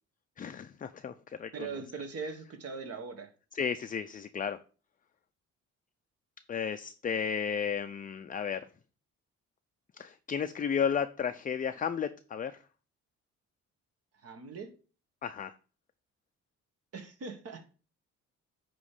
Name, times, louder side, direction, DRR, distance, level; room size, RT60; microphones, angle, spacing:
voice 1, 0.4-1.7 3.5-4.6 6.5-8.7 10.0-12.6 15.2-15.5, left 7 dB, 30° left, 0.4 m, -33 dB
voice 2, 1.5-3.3 14.1-14.7 16.9-17.7, right 4 dB, 50° right, 1.4 m, -40 dB
9.3 x 3.1 x 4.9 m
cardioid pair, 90°, 30 cm